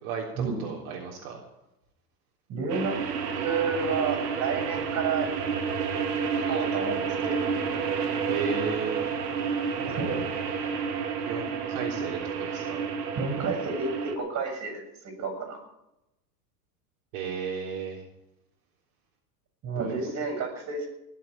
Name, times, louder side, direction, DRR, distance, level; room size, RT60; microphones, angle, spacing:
voice 1, 0.0-1.4 8.3-9.1 11.3-12.8 17.1-18.0 19.8-20.1, right 5 dB, 60° right, -2 dB, 3.7 m, -34 dB
voice 2, 2.5-3.0 3.4-5.3 6.3-7.5 9.8-10.3 13.2-14.8 15.2-15.6 19.6-20.9, right 4 dB, 35° right, 5 dB, 6.9 m, -30 dB
sound 1, 2.7-14.1, right 6 dB, 85° right, 3.2 m, -30 dB
20.0 x 7.8 x 8.7 m, 0.90 s
supercardioid pair, 135°, 46 cm